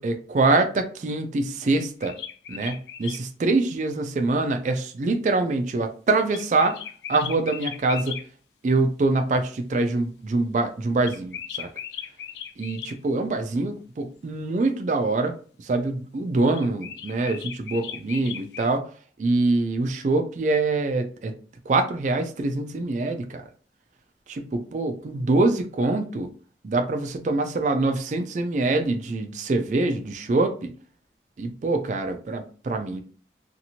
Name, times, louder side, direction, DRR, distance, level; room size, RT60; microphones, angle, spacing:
voice 1, 0.0-2.2 2.5-6.8 7.1-8.2 8.6-11.7 12.6-18.9 19.2-21.3 21.7-23.5 24.3-26.3 26.6-30.7 31.4-33.0, right 2 dB, 45° right, 0.3 m, -24 dB
sound 1, 1.7-3.2 6.3-8.2 11.0-13.0 16.5-18.7, left 9 dB, 75° left, 0.3 m, -37 dB
2.8 x 2.5 x 2.8 m
head